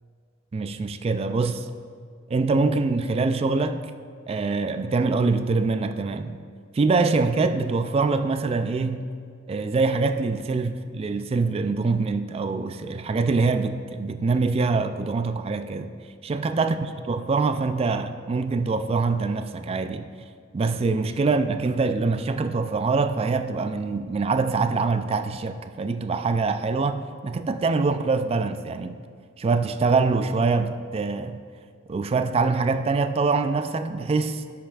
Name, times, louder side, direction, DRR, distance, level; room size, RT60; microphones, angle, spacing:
voice 1, 0.5-1.7 2.3-3.8 4.3-6.4 6.7-9.1 9.5-15.9 16.2-16.8 17.1-20.1 20.5-29.0 29.4-31.4 31.9-34.4, right 4 dB, 30° right, 0.3 m, -24 dB
11.0 x 8.5 x 2.3 m
head